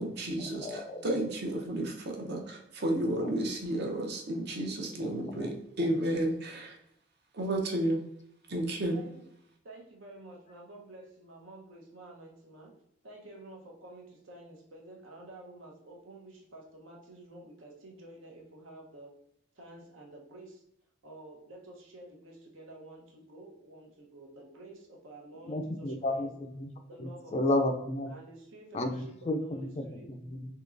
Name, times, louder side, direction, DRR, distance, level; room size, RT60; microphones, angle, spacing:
voice 1, 0.0-6.7 7.3-8.0 8.5-9.0, right 1 dB, 55° right, 2 dB, 0.7 m, -32 dB
voice 2, 0.5-1.0 3.0-3.3 5.0-5.5 5.8-5.9 25.4-26.7 27.0-28.1 28.7-30.6, left 1 dB, 35° left, 5 dB, 0.4 m, -33 dB
voice 3, 6.2-6.8 8.9-9.3 9.6-12.7 13.0-19.1 19.5-20.6 21.0-26.3 26.9-27.7 28.1-30.1, right 1 dB, 85° right, -1 dB, 0.9 m, -50 dB
3.7 x 2.9 x 2.5 m, 0.77 s
head